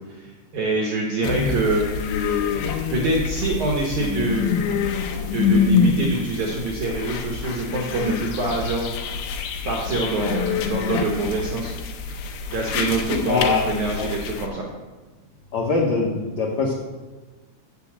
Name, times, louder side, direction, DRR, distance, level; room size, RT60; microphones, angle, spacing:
voice 1, 0.2-2.4 2.9-4.5 5.3-8.9 9.6-11.7 12.5-14.7, right 2 dB, 70° right, -2 dB, 1.9 m, -25 dB
sound 1, 1.2-14.5, left 6 dB, 90° left, 3.2 m, -26 dB
voice 2, 13.1-13.6 14.0-14.1 15.5-16.7, left 4 dB, 70° left, -3 dB, 1.7 m, -22 dB
7.8 x 6.9 x 7.3 m, 1.3 s
omnidirectional pair, 5.0 m